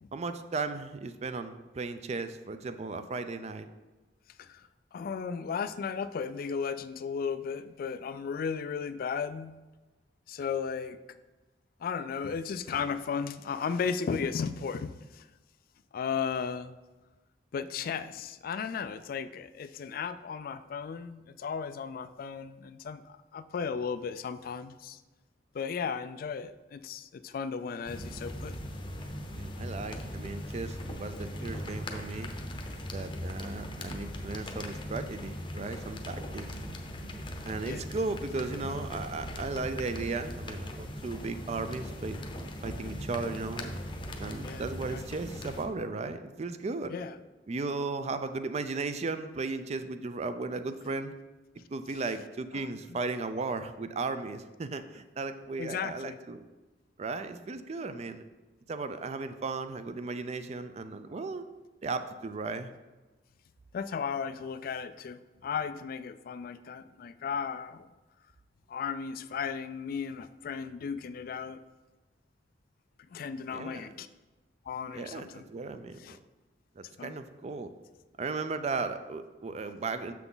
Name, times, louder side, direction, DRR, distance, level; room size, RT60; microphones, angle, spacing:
voice 1, 0.1-3.7 29.0-32.3 32.9-36.5 37.4-42.2 42.6-43.8 44.2-46.9 47.5-51.1 51.7-56.4 57.0-58.2 58.7-61.5 61.8-62.7 73.5-73.9 74.9-76.2 76.8-77.7 78.2-80.1, right 3 dB, 35° right, 10 dB, 0.4 m, -36 dB
voice 2, 4.4-9.6 10.3-11.0 11.8-15.3 15.9-16.8 17.5-25.0 25.5-28.5 37.6-37.9 44.4-45.0 46.9-47.2 52.5-52.7 55.6-56.2 63.7-67.9 68.7-71.6 73.1-74.1 74.7-75.5 76.0-76.2 77.0-77.2, left 6 dB, 50° left, 12 dB, 0.3 m, -35 dB
sound 1, 27.8-45.7, equal, 25° left, 0.7 m, -39 dB
6.9 x 5.9 x 3.9 m, 1.2 s
head